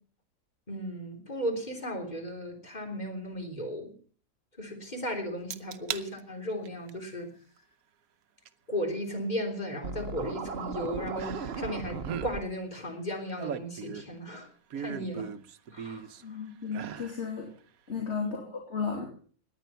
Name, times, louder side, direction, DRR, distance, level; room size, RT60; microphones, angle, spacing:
voice 1, 0.7-3.9 4.6-7.3 8.7-14.5 14.7-15.3 15.7-16.4 18.2-18.3, equal, 30° left, 4 dB, 3.7 m, -35 dB
sound 1, 5.5-6.1 6.5-6.9 8.5-8.6 11.2-11.7 12.0-12.3 13.1-14.2 14.7-16.2 16.7-17.2 17.6-17.7, right 8 dB, 80° right, 1.3 m, -38 dB
Scratching (performance technique), 9.8-12.4, right 5 dB, 50° right, 1.2 m, -37 dB
voice 2, 16.2-17.5 17.9-19.0, left 5 dB, 50° left, 0 dB, 3.2 m, -34 dB
18.5 x 11.0 x 5.6 m, 0.43 s
omnidirectional pair, 1.5 m